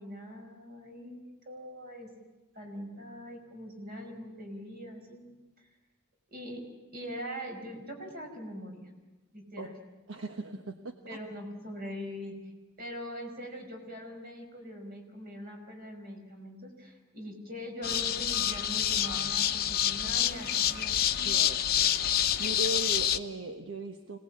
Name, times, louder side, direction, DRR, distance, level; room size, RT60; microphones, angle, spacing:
voice 1, 0.0-2.1 2.5-5.3 6.3-6.6 6.9-8.9 9.3-9.7 11.1-12.4 12.8-21.0, equal, 45° right, 3 dB, 5.4 m, -42 dB
voice 2, 10.1-11.2 21.2-21.7 22.0-24.2, right 2 dB, 65° right, 5 dB, 1.2 m, -38 dB
sound 1, 17.8-23.2, left 10 dB, 45° left, 0.9 m, -27 dB
26.0 x 19.0 x 8.6 m, 1.1 s
head